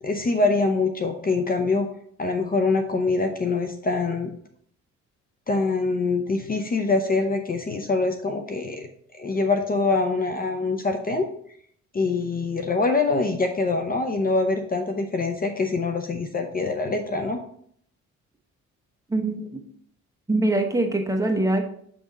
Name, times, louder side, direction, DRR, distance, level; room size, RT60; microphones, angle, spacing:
voice 1, 0.0-1.9 2.2-4.3 5.5-8.9 9.2-11.3 11.9-17.4, left 3 dB, 30° left, 5 dB, 0.6 m, -24 dB
voice 2, 19.1-19.5 20.3-21.7, right 2 dB, 10° right, 3 dB, 1.0 m, -23 dB
7.8 x 3.6 x 4.0 m, 0.64 s
cardioid pair, 90°, 30 cm